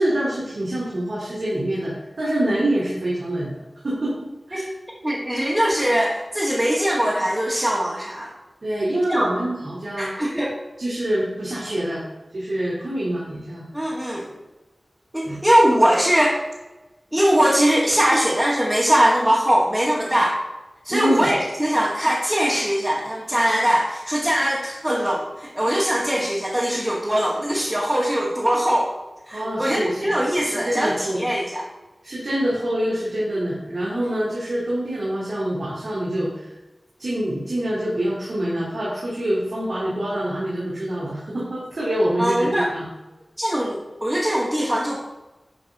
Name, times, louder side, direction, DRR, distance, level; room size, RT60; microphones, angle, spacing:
voice 1, 0.0-1.9 2.2-4.6 8.6-10.1 10.8-12.0 12.3-13.6 15.2-15.4 20.9-21.3 29.3-30.1 30.4-31.2 32.0-36.5 37.0-42.8, right 1 dB, 75° right, -8 dB, 3.2 m, -25 dB
voice 2, 5.0-8.3 9.1-9.3 10.0-10.5 13.7-14.3 15.1-16.4 17.1-20.4 20.8-28.9 29.3-31.6 42.2-42.7 43.4-45.0, equal, 15° right, -5 dB, 2.2 m, -21 dB
11.0 x 5.1 x 5.5 m, 1.1 s
wide cardioid pair, 80°, 0 cm